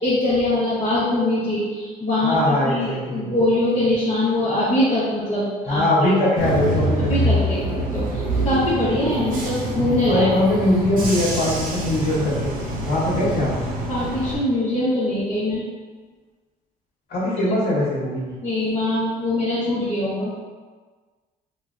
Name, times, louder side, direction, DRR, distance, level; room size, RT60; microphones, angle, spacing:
voice 1, 0.0-6.1 7.0-7.6 7.9-10.3 13.9-15.6 18.4-20.4, left 1 dB, 40° left, -12 dB, 1.0 m, -23 dB
voice 2, 2.2-3.4 5.6-7.4 10.1-12.5 12.8-13.5 17.1-18.4, left 1 dB, 65° left, -5 dB, 1.1 m, -21 dB
Bus / Engine, 6.4-14.4, right 1 dB, 55° right, 0.7 m, -25 dB
4.2 x 2.2 x 2.4 m, 1.4 s
cardioid pair, 110°, 17 cm